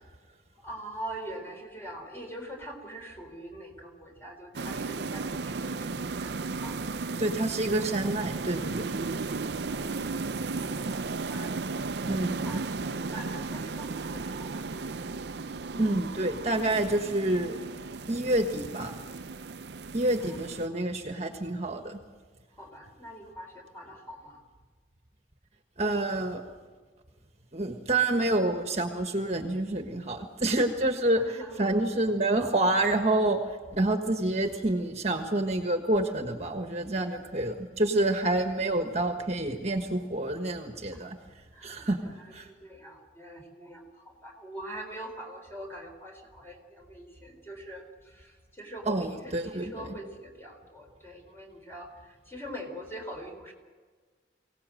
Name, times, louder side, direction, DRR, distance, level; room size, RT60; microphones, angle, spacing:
voice 1, 0.6-7.0 9.6-11.6 12.4-14.6 20.3-20.4 20.7-20.8 22.6-24.4 31.2-31.7 40.9-41.1 41.5-41.9 42.2-53.5, right 1 dB, 15° left, 2 dB, 4.1 m, -43 dB
sound 1, 4.5-20.7, right 3 dB, 60° right, 0.6 m, -35 dB
voice 2, 7.2-8.8 12.1-12.6 15.8-17.6 18.1-18.9 19.9-22.0 25.8-26.4 27.5-33.4 33.7-41.2 41.6-42.0 42.3-42.5 48.8-49.9, right 2 dB, 35° right, 5 dB, 1.5 m, -28 dB
24.0 x 17.5 x 7.8 m, 1.4 s
head